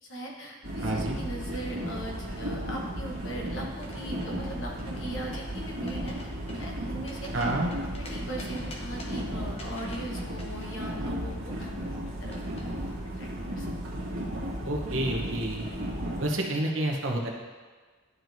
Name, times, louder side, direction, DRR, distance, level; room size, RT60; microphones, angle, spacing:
voice 1, 0.0-7.5 7.9-11.7 12.1-12.4 13.2-13.7, right 1 dB, 60° left, -1 dB, 1.2 m, -39 dB
sound 1, 0.6-16.2, equal, 80° right, 1.5 m, -35 dB
voice 2, 0.8-1.2 7.3-7.7 14.6-15.7 16.2-17.3, right 1 dB, 65° right, 0 dB, 1.0 m, -29 dB
sound 2, 3.7-4.4 4.8-5.5 5.9-6.2 6.5-8.1 8.4-9.2 9.6-12.6, left 1 dB, 30° left, 0.9 m, -46 dB
11.0 x 4.5 x 2.7 m, 1.4 s
head